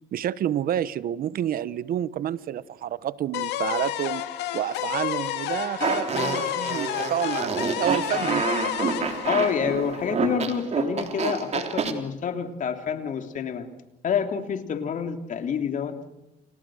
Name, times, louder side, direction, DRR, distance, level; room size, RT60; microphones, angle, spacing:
voice 1, 0.1-4.3 4.5-8.5, right 10 dB, 60° right, 1.0 m, -29 dB
sound 1, 3.3-10.3, left 13 dB, 85° left, 2.3 m, -30 dB
Fart, 5.8-11.9, right 5 dB, 40° right, 3.6 m, -28 dB
voice 2, 9.2-13.7 14.0-16.0, left 7 dB, 50° left, 3.3 m, -28 dB
29.5 x 29.5 x 6.5 m
cardioid pair, 110°, 17 cm